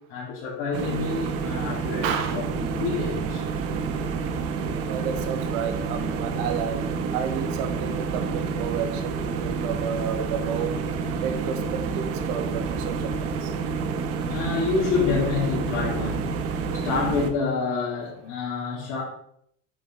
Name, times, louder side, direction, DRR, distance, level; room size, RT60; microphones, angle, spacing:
voice 1, 0.1-3.4 14.3-19.0, left 5 dB, 60° left, -7 dB, 3.1 m, -28 dB
sound 1, 0.7-17.3, right 5 dB, 40° right, 0.9 m, -29 dB
voice 2, 2.0-2.4 4.9-6.8 7.1-10.8 11.2-13.5, right 7 dB, 75° right, 7 dB, 1.5 m, -31 dB
8.3 x 6.3 x 4.4 m, 0.68 s
cardioid pair, 170°, 37 cm